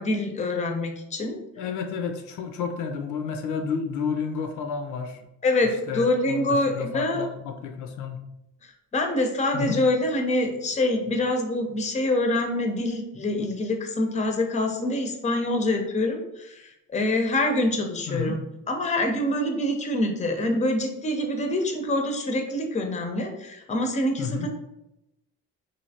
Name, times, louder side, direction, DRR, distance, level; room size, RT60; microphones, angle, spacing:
voice 1, 0.0-1.4 5.4-7.2 8.9-18.3 18.7-24.5, left 1 dB, 25° left, 4 dB, 0.5 m, -25 dB
voice 2, 1.6-5.2 5.9-8.2 9.5-9.8 18.1-18.4 24.2-24.5, left 6 dB, 80° left, 5 dB, 0.5 m, -31 dB
3.1 x 2.7 x 2.7 m, 0.88 s
cardioid pair, 90°, 30 cm